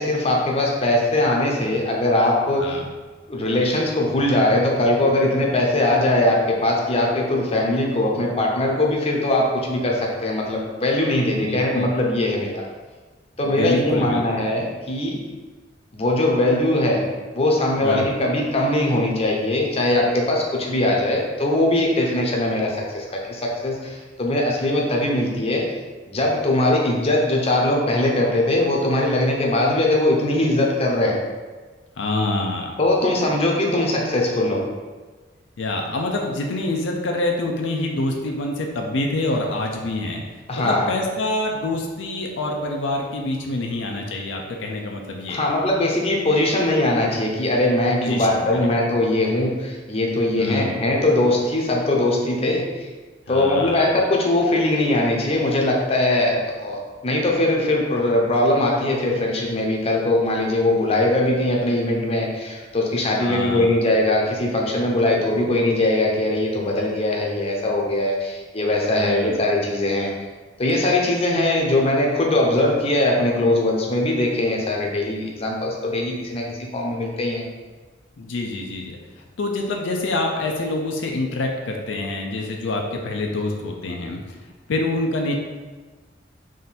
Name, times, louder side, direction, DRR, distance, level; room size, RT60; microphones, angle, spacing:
voice 1, 0.0-2.8 3.3-12.6 13.4-15.2 15.9-17.0 17.3-25.6 26.1-31.2 32.8-34.6 40.5-40.9 45.3-52.9 53.3-70.1 70.6-77.4, left 1 dB, 35° left, -1 dB, 0.6 m, -21 dB
voice 2, 11.3-11.9 13.4-14.4 17.8-18.1 32.0-32.8 35.6-40.2 40.6-45.4 48.0-48.7 50.4-50.8 53.3-53.9 63.2-63.8 68.9-69.4 78.2-79.0 79.4-84.2 84.7-85.3, left 2 dB, 85° left, 1 dB, 0.5 m, -26 dB
3.7 x 2.6 x 4.1 m, 1.3 s
head